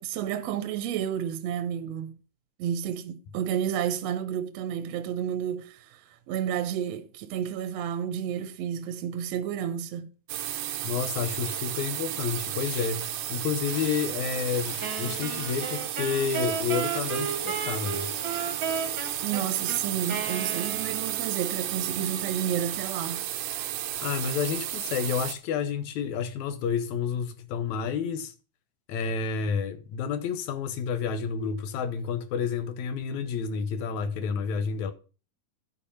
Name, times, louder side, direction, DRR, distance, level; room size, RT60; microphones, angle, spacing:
voice 1, 0.0-2.2 2.6-6.0 6.3-10.1 19.2-23.2, right 9 dB, 65° right, 1.8 m, -31 dB
sound 1, 10.3-25.3, right 12 dB, 90° right, 2.4 m, -33 dB
voice 2, 10.8-18.1 24.0-28.3 28.9-34.9, left 6 dB, 70° left, 2.2 m, -30 dB
sound 2, 11.5-12.2 12.5-13.3 13.7-20.2, left 2 dB, 45° left, 4.1 m, -45 dB
Wind instrument woodwind instrument, 14.8-21.4, right 6 dB, 50° right, 1.5 m, -34 dB
12.0 x 4.8 x 5.6 m
omnidirectional pair, 3.7 m